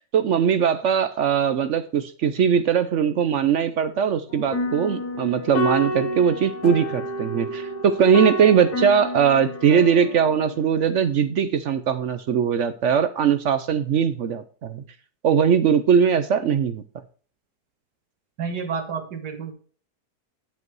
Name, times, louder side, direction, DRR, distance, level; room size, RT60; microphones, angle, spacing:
voice 1, 0.0-14.8 15.2-16.8, right 7 dB, 60° right, 10 dB, 0.8 m, -20 dB
sound 1, 4.3-10.9, left 1 dB, 75° left, 1.8 m, -29 dB
voice 2, 18.4-19.5, right 6 dB, 90° right, 5 dB, 2.0 m, -30 dB
10.0 x 5.4 x 4.7 m, 0.41 s
omnidirectional pair, 1.7 m